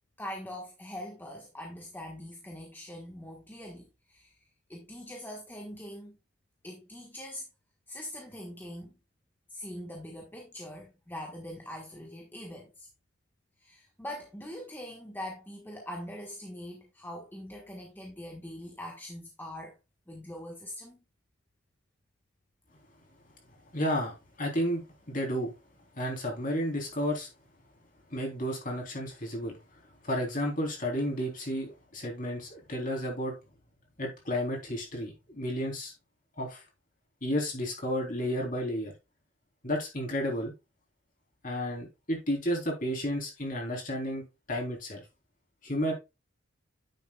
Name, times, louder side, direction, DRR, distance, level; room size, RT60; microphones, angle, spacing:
voice 1, 0.2-4.3 4.7-6.2 6.6-7.5 7.9-8.9 9.5-12.9 13.6-19.8 20.1-21.0, left 1 dB, 10° left, 1.3 m, -42 dB
voice 2, 23.7-25.5 25.9-27.3 28.1-29.6 30.0-33.3 34.0-35.9 36.4-36.6 37.2-38.9 39.6-40.5 41.4-45.0 45.6-45.9, equal, 40° left, 3.4 m, -32 dB
9.5 x 7.3 x 2.3 m
head